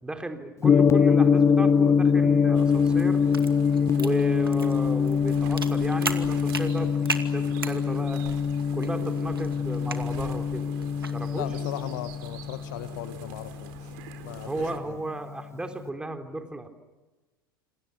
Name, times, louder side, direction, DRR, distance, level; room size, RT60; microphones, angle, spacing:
voice 1, 0.0-3.2 4.0-8.2 8.7-10.7 11.1-11.5 14.5-16.7, right 1 dB, 10° right, 6 dB, 3.7 m, -34 dB
Gong, 0.6-14.8, left 6 dB, 25° left, 0.9 m, -24 dB
sound 1, 2.5-14.8, right 10 dB, 55° right, 3.7 m, -44 dB
sound 2, 3.1-11.2, right 3 dB, 85° right, 2.4 m, -38 dB
voice 2, 11.3-13.7 14.2-14.5, left 13 dB, 55° left, 12 dB, 1.5 m, -37 dB
29.0 x 27.5 x 6.9 m, 1.2 s
figure-of-eight pair, 80°, 12 cm